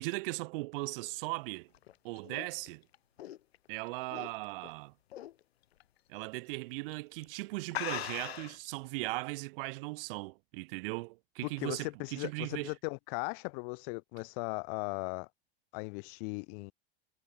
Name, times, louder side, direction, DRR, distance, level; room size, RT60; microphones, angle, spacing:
voice 1, 0.0-1.7 2.0-2.8 3.7-4.9 6.1-12.7, right 24 dB, 60° right, 2.2 m, -38 dB
sound 1, 1.6-4.7 5.1-5.4 5.8-5.9 6.7-6.9 7.2-7.3 7.7-8.7, left 12 dB, 70° left, 4.2 m, -40 dB
voice 2, 11.4-15.3 15.7-16.7, left 40 dB or more, 55° left, 2.6 m, -38 dB
figure-of-eight pair, 80°, 32 cm